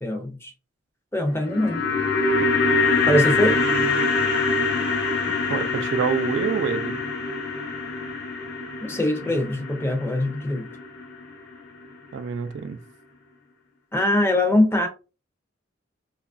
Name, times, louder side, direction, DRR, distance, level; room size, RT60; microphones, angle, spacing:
voice 1, 0.0-0.5 1.1-1.8 2.4-2.5 3.1-3.6 8.8-10.7 13.9-14.9, left 1 dB, 15° left, 0.5 m, -22 dB
sound 1, 1.3-11.6 11.8-11.9, left 3 dB, 60° left, 0.7 m, -24 dB
voice 2, 5.5-6.9 9.3-9.4 12.1-12.8, right 6 dB, 65° right, 0.3 m, -27 dB
2.9 x 2.3 x 2.4 m
head